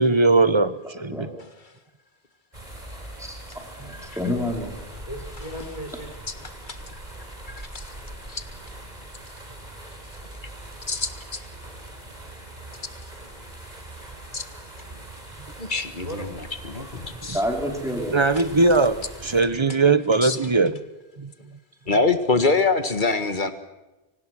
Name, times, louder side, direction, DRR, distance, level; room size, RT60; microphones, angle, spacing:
voice 1, 0.0-1.3 17.3-17.4 18.1-20.8 21.2-21.3, right 3 dB, 30° right, 13 dB, 1.1 m, -20 dB
voice 2, 1.1-1.4 7.7-7.8 8.3-8.4 10.9-11.4 14.3-14.4 15.6-16.3 16.6-17.4 20.2-20.4 21.9-23.5, left 3 dB, 50° left, 10 dB, 1.8 m, -24 dB
sound 1, 2.5-19.4, right 1 dB, 45° right, 4.7 m, -41 dB
voice 3, 3.8-4.7 17.3-18.2, left 1 dB, 5° right, 1 dB, 5.0 m, -28 dB
voice 4, 5.1-6.1 6.4-6.5 15.6-16.4 16.8-16.9, equal, 35° left, 2 dB, 4.5 m, -38 dB
24.5 x 19.0 x 6.2 m, 1.1 s
omnidirectional pair, 1.0 m